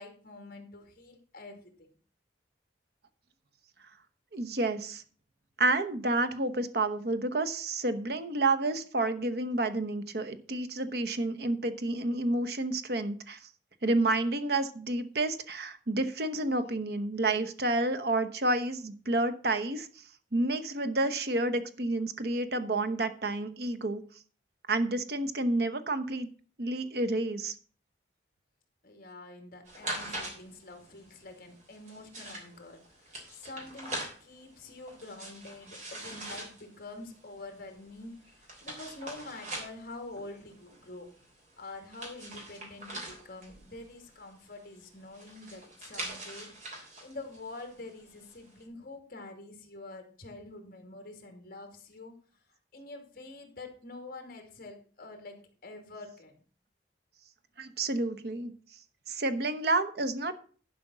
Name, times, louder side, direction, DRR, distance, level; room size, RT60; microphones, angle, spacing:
voice 1, 0.0-1.9 28.8-41.1 41.6-46.5 47.0-52.1 52.7-56.4, left 2 dB, 50° left, 4 dB, 2.3 m, -46 dB
voice 2, 4.3-5.0 5.6-13.5 13.8-20.0 20.3-24.0 24.7-26.3 26.6-27.5 57.6-58.5 59.1-60.4, right 2 dB, 55° right, 10 dB, 0.9 m, -30 dB
sound 1, 29.7-48.6, right 1 dB, 40° right, 3.3 m, -44 dB
11.0 x 5.1 x 6.0 m, 0.42 s
head